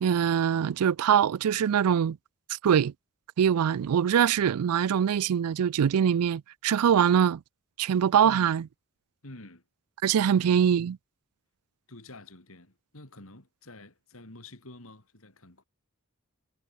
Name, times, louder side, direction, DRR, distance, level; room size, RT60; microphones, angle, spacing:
voice 1, 0.0-2.2 2.6-2.9 3.4-7.4 7.8-8.6 10.0-11.0, right 8 dB, 90° right, 0.4 m, -23 dB
voice 2, 8.2-8.6 9.2-9.6 10.3-10.6 11.9-15.6, left 2 dB, 70° left, 3.8 m, -48 dB
head